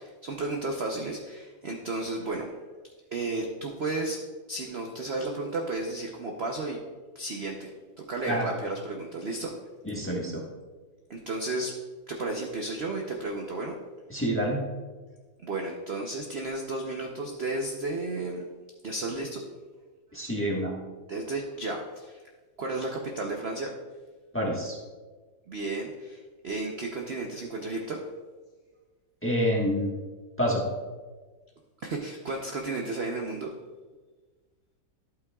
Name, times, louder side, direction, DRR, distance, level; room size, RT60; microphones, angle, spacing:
voice 1, 0.0-2.4 3.1-4.2 4.5-6.8 7.1-7.7 8.1-9.5 11.1-11.7 12.1-13.7 15.4-18.4 18.8-19.4 21.1-22.2 22.6-23.7 25.5-28.0 31.8-33.5, right 2 dB, 50° right, 1 dB, 0.8 m, -33 dB
voice 2, 9.8-10.4 14.1-14.6 20.1-20.7 24.3-24.8 29.2-29.9 30.4-30.6, equal, 10° left, -3 dB, 1.2 m, -27 dB
12.0 x 8.3 x 2.3 m, 1.4 s
omnidirectional pair, 1.9 m